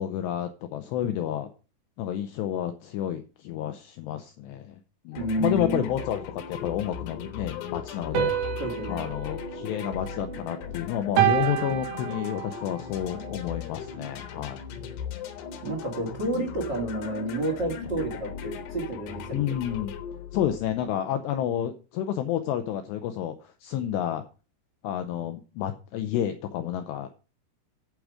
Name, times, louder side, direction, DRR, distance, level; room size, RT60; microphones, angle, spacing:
voice 1, 0.0-1.5 2.0-4.8 5.1-8.3 8.9-14.6 19.3-19.9 20.3-24.2 24.8-27.1, left 10 dB, 85° left, 8 dB, 2.4 m, -30 dB
sound 1, 5.1-21.0, left 7 dB, 70° left, 2.9 m, -38 dB
voice 2, 5.1-5.8 8.6-9.1 15.6-19.5, right 1 dB, 70° right, 2 dB, 1.0 m, -30 dB
sound 2, 8.2-10.6 11.2-12.7, right 11 dB, 90° right, 4.4 m, -28 dB
11.5 x 4.9 x 6.3 m, 0.34 s
omnidirectional pair, 5.7 m